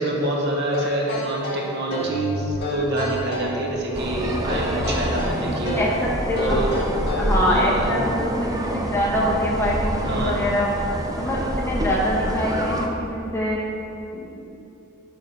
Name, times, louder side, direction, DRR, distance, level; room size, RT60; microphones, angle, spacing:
voice 1, 0.0-5.8 6.4-7.0 7.4-8.0 10.0-10.4, right 1 dB, 50° right, -2 dB, 1.1 m, -26 dB
sound 1, 0.7-2.2 2.6-3.6 4.5-5.9 6.4-7.4, left 1 dB, 50° left, 1.6 m, -30 dB
sound 2, 2.0-6.9 7.4-7.5, equal, 30° left, 0.9 m, -37 dB
sound 3, 3.9-12.9, right 1 dB, 15° right, 0.5 m, -27 dB
voice 2, 5.8-6.7 7.2-10.7 11.2-13.6 14.1-14.3, equal, 10° left, -5 dB, 1.1 m, -24 dB
9.7 x 3.7 x 5.8 m, 2.9 s
head